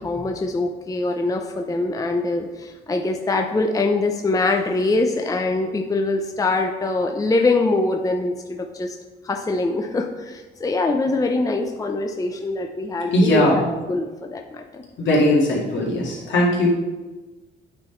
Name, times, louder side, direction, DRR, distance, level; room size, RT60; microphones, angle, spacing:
voice 1, 0.0-8.9 9.2-13.5 13.9-14.8, left 2 dB, 15° left, 3 dB, 0.6 m, -23 dB
voice 2, 13.1-13.7 15.0-16.7, left 1 dB, 70° left, -4 dB, 2.2 m, -19 dB
8.9 x 3.8 x 4.4 m, 1.2 s
cardioid pair, 90°, 20 cm